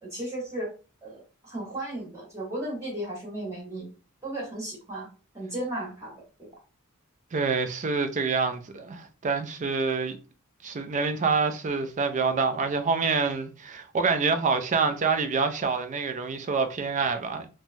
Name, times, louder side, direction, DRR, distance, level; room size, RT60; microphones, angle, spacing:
voice 1, 0.0-0.7 1.0-3.9 4.2-6.5, right 1 dB, 15° right, 1.3 m, -35 dB
voice 2, 7.3-10.2 10.6-17.5, right 4 dB, 35° right, 0.4 m, -26 dB
3.2 x 2.2 x 2.6 m
head